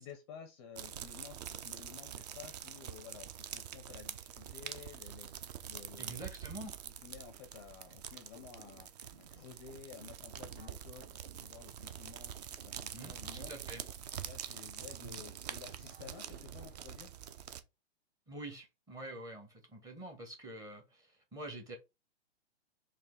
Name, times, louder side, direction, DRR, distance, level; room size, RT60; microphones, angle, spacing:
voice 1, 0.0-6.2 6.8-11.1 11.4-13.5 14.2-17.1, left 7 dB, 25° left, 0.5 m, -53 dB
sound 1, 0.8-17.6, right 9 dB, 40° right, 0.4 m, -46 dB
voice 2, 6.0-6.8 12.9-13.8 15.0-15.2 18.3-21.8, right 1 dB, 10° right, 0.7 m, -47 dB
sound 2, 7.5-15.0 15.2-16.9, right 5 dB, 55° right, 1.8 m, -59 dB
4.3 x 2.4 x 3.5 m
hypercardioid pair, 140°, 35 cm